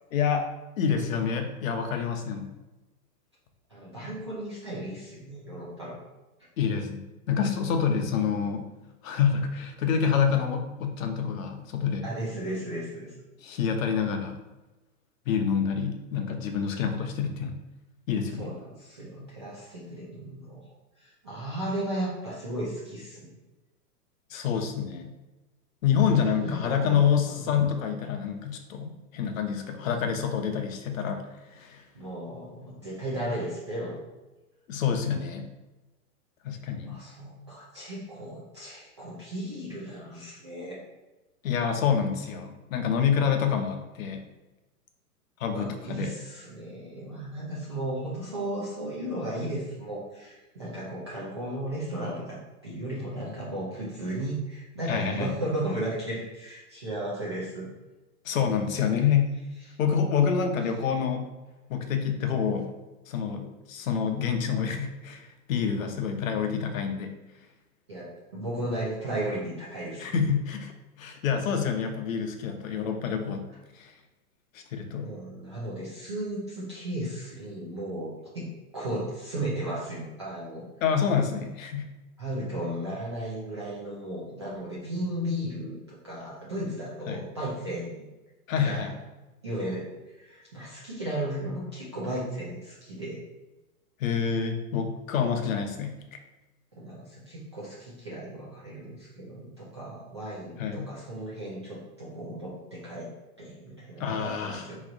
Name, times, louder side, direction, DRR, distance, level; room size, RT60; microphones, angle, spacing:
voice 1, 0.1-0.5 0.8-2.5 6.6-8.7 9.0-12.0 13.4-14.4 15.3-17.6 18.1-18.5 24.3-25.1 25.8-31.8 34.7-35.5 36.4-37.0 41.4-44.2 45.4-46.1 54.9-55.3 58.2-59.3 59.8-61.3 61.7-62.7 63.1-67.2 70.0-70.7 71.0-73.5 73.8-73.9 74.5-75.1 80.8-81.9 87.1-87.2 88.5-88.9 94.0-96.0 100.6-100.9 104.0-104.6, left 7 dB, 60° left, 5 dB, 0.8 m, -27 dB
voice 2, 3.7-6.0 12.0-13.1 18.4-20.6 21.0-23.3 26.1-27.0 27.3-27.5 31.9-34.1 36.8-40.8 45.5-57.7 67.9-70.1 71.3-71.5 75.0-78.5 78.7-80.7 82.2-88.1 88.6-88.9 89.4-89.9 90.1-93.2 96.7-103.1 103.4-104.8, right 1 dB, 20° right, -8 dB, 0.3 m, -35 dB
4.2 x 3.1 x 3.7 m, 1.1 s
hypercardioid pair, 155°, 46 cm